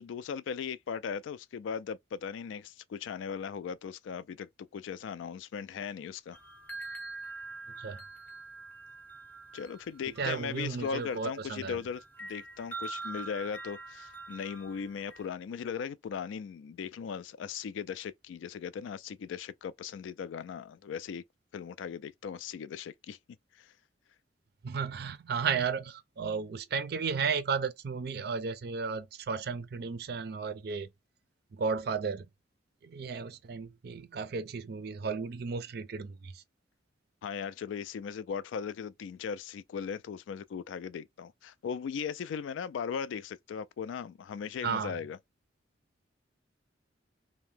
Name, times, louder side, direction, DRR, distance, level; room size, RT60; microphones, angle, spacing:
voice 1, 0.0-6.4 9.5-21.2 21.5-23.2 23.6-23.7 37.2-45.2, left 6 dB, 85° left, 0.3 m, -38 dB
sound 1, 6.3-15.3, right 3 dB, 10° left, 0.5 m, -45 dB
voice 2, 10.2-11.8 24.6-30.9 31.5-32.3 32.8-36.4 44.6-45.0, right 5 dB, 55° right, 0.4 m, -34 dB
2.7 x 2.1 x 3.3 m
head